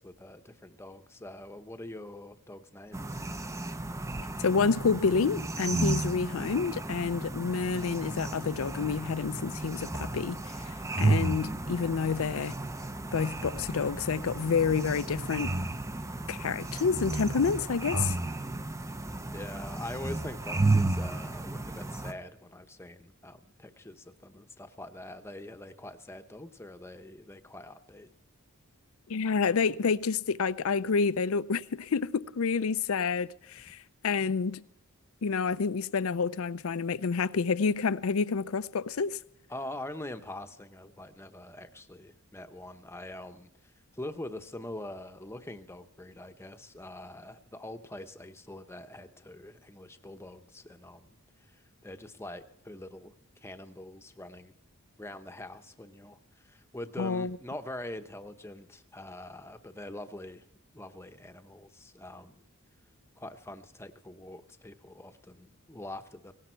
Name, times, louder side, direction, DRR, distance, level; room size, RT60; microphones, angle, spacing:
voice 1, 0.0-3.2 19.3-28.1 39.5-43.5 43.9-51.2 51.5-53.1 53.4-54.5 55.0-60.4 60.7-62.5 63.2-66.3, left 1 dB, 10° left, 0.9 m, -44 dB
sound 1, 2.9-22.1, right 2 dB, 15° right, 0.6 m, -33 dB
voice 2, 4.4-12.6 13.1-15.5 16.3-18.1 29.1-34.6 35.2-39.2 57.0-57.4, left 5 dB, 70° left, 0.5 m, -29 dB
17.5 x 17.5 x 4.5 m
head